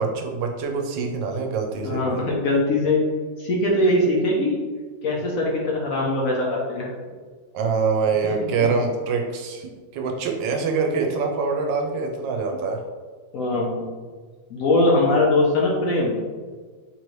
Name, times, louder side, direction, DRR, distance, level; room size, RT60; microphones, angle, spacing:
voice 1, 0.0-2.2 7.5-12.8, right 4 dB, 85° right, 2 dB, 1.3 m, -25 dB
voice 2, 1.8-3.0 3.4-4.6 5.0-6.9 8.4-8.5 13.3-13.8 14.5-16.1, left 2 dB, 60° left, -3 dB, 1.0 m, -21 dB
3.8 x 3.1 x 3.0 m, 1.5 s
omnidirectional pair, 1.9 m